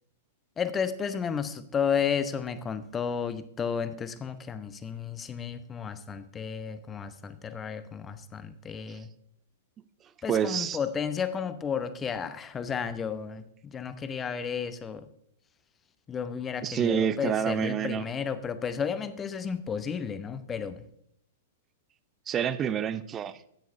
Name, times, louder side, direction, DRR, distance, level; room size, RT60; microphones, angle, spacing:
voice 1, 0.6-9.1 10.2-15.1 16.1-20.8, left 7 dB, 20° left, 12 dB, 0.8 m, -32 dB
voice 2, 10.3-10.8 16.6-18.1 22.3-23.4, right 8 dB, 25° right, 15 dB, 0.6 m, -28 dB
13.0 x 9.3 x 2.6 m, 0.71 s
figure-of-eight pair, 105°, 0 cm